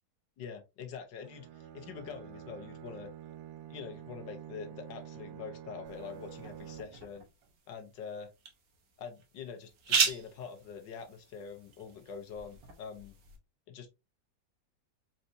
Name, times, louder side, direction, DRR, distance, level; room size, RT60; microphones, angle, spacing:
voice 1, 0.4-3.1 3.7-7.2 7.7-8.3 9.0-13.1 13.7-13.9, left 6 dB, 75° left, 1.6 m, -44 dB
Bowed string instrument, 1.2-7.2, right 10 dB, 85° right, 1.5 m, -48 dB
sound 1, 5.9-13.4, right 5 dB, 55° right, 1.5 m, -37 dB
4.3 x 4.2 x 2.6 m
omnidirectional pair, 2.0 m